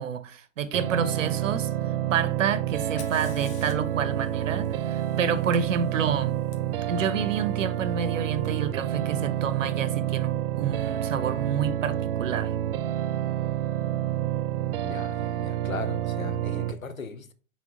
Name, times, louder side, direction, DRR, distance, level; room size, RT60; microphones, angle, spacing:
voice 1, 0.0-1.7 2.1-6.3 6.9-12.5, right 7 dB, 70° right, 0.9 m, -29 dB
sound 1, 0.7-16.7, right 12 dB, 45° right, 0.5 m, -29 dB
Fire, 2.8-6.6 8.4-8.5 9.4-9.8, left 7 dB, 55° left, 1.3 m, -50 dB
voice 2, 14.8-17.3, left 4 dB, 90° left, 0.8 m, -38 dB
6.1 x 4.0 x 3.8 m
figure-of-eight pair, 105°, 40 cm